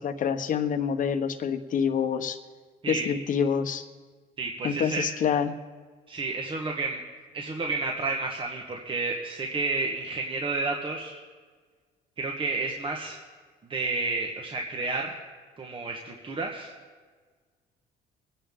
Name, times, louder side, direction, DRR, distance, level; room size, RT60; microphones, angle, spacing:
voice 1, 0.0-2.4 2.9-3.8 4.6-5.5, left 7 dB, 50° left, 8 dB, 1.1 m, -27 dB
voice 2, 4.4-5.0 6.1-7.0 7.3-11.2 12.2-13.2 13.7-15.2 15.6-16.7, right 3 dB, 30° right, 1 dB, 1.4 m, -31 dB
24.0 x 10.0 x 3.7 m, 1.5 s
cardioid pair, 110°, 17 cm